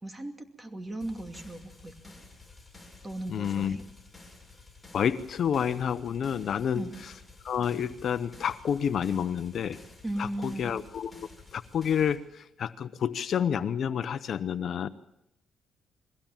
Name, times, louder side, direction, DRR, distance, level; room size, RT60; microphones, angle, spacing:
voice 1, 0.0-1.9 3.0-3.8 6.7-7.0 10.0-10.8, right 1 dB, 15° right, 5 dB, 2.6 m, -37 dB
sound 1, 1.0-12.2, left 3 dB, 10° left, 6.3 m, -52 dB
voice 2, 3.3-3.8 4.9-6.8 7.4-9.8 10.2-14.9, left 8 dB, 60° left, 13 dB, 0.8 m, -29 dB
22.0 x 16.0 x 7.3 m, 0.85 s
cardioid pair, 90°, 0 cm